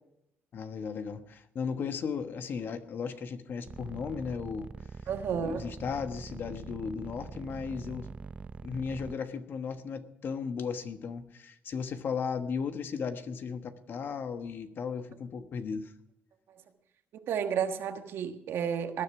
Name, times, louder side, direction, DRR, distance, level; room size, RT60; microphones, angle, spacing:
voice 1, 0.5-4.7 5.3-8.1 8.6-15.9, left 6 dB, 55° left, 9 dB, 1.2 m, -36 dB
sound 1, 3.7-9.1, right 4 dB, 30° right, 0.5 m, -43 dB
voice 2, 5.1-5.7 17.1-19.0, right 7 dB, 75° right, 7 dB, 1.5 m, -32 dB
19.5 x 10.0 x 4.8 m, 0.79 s
cardioid pair, 100°, 4 cm